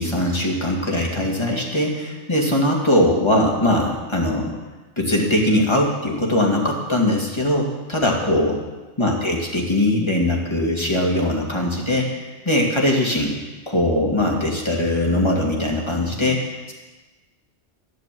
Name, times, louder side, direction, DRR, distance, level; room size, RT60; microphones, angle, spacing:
voice 1, 0.0-4.5 5.0-8.6 9.0-13.3 13.7-16.7, left 1 dB, 20° left, -1 dB, 2.6 m, -21 dB
13.5 x 10.5 x 7.8 m, 1.2 s
omnidirectional pair, 1.3 m